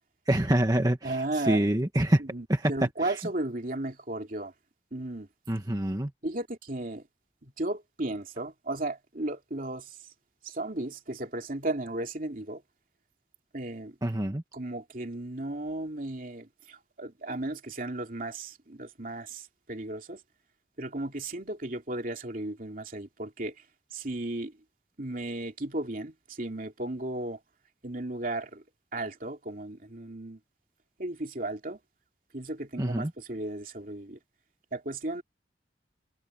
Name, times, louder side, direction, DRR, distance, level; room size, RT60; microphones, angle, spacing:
voice 1, 0.3-2.2 2.5-2.7 3.0-3.1 5.5-6.1 14.0-14.4 32.8-33.1, right 1 dB, 20° right, 1.2 m, -26 dB
voice 2, 1.0-1.6 2.2-4.5 4.9-5.3 6.2-7.0 7.4-9.9 10.4-12.6 13.5-13.9 14.5-20.2 20.8-23.5 23.9-24.5 25.0-27.4 27.8-28.6 28.9-30.4 31.0-31.8 32.3-34.2 34.7-35.2, right 2 dB, 50° right, 2.9 m, -35 dB
head